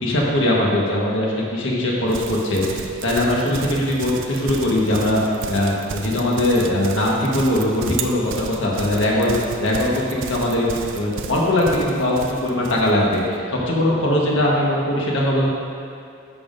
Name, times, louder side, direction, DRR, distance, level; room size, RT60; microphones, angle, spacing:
voice 1, 0.0-5.2 5.5-10.7 10.9-15.5, left 1 dB, 65° left, -3 dB, 1.5 m, -20 dB
Livestock farm animals working animals, 2.1-13.3, right 5 dB, 60° right, 0.5 m, -33 dB
10.5 x 7.3 x 2.6 m, 2.4 s
head